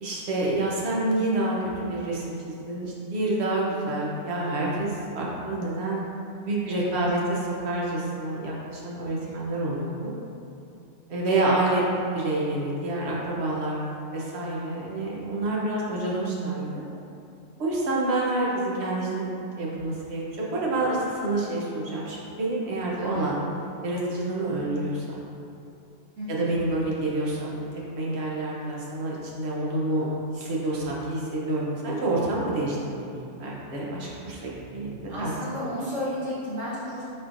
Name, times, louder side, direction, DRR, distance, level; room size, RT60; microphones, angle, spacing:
voice 1, 0.0-6.0 6.5-10.1 11.1-13.8 14.1-16.8 17.6-19.3 19.6-23.4 23.8-25.2 26.3-27.5 27.9-30.1 30.3-35.3, right 2 dB, 60° right, -4 dB, 1.0 m, -28 dB
voice 2, 6.7-7.0 9.3-9.4 23.0-23.3 26.2-26.5 34.3-34.4 35.1-37.0, equal, 85° right, -10 dB, 1.8 m, -33 dB
4.3 x 4.3 x 2.5 m, 2.7 s
omnidirectional pair, 1.3 m